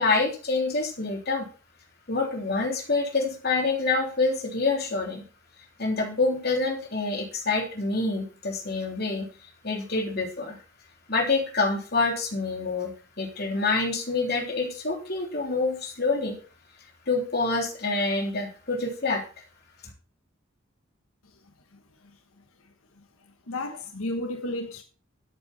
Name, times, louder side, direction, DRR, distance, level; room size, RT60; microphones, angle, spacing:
voice 1, 0.0-1.5 2.1-5.2 5.8-9.3 9.6-10.6 11.1-16.4 17.1-19.2, left 3 dB, 50° left, 3.3 m, -27 dB
voice 2, 21.7-22.4 23.0-23.1 23.5-24.8, left 1 dB, 90° left, 1.3 m, -34 dB
13.0 x 8.3 x 4.2 m
head